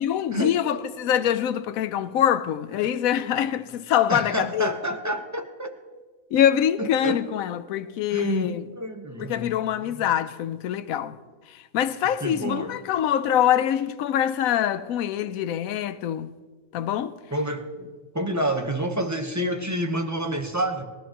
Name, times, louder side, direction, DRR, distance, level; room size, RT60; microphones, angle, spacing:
voice 1, 0.0-4.7 6.3-8.6 9.3-11.2 11.7-16.3 16.7-17.2, left 10 dB, 80° left, 1.1 m, -24 dB
voice 2, 4.1-5.8 6.8-7.2 8.1-9.6 9.8-10.1 12.2-12.8 17.3-17.6 18.1-20.8, right 1 dB, 15° right, 0.9 m, -28 dB
20.5 x 14.0 x 3.0 m
omnidirectional pair, 1.5 m